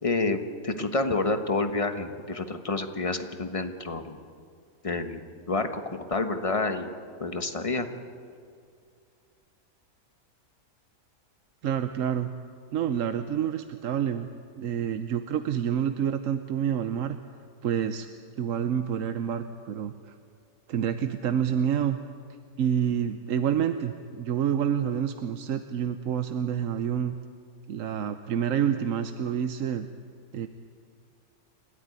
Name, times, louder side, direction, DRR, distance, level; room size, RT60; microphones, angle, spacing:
voice 1, 0.0-4.2 4.8-5.2 5.5-6.9 7.2-7.9, left 3 dB, 25° left, 7 dB, 1.2 m, -28 dB
voice 2, 11.6-12.3 12.7-14.3 14.5-17.2 17.6-18.1 18.4-20.1 20.7-22.0 22.6-27.1 27.7-29.9 30.3-30.5, right 9 dB, 65° right, 9 dB, 1.1 m, -28 dB
28.5 x 13.5 x 9.6 m, 2.3 s
omnidirectional pair, 1.6 m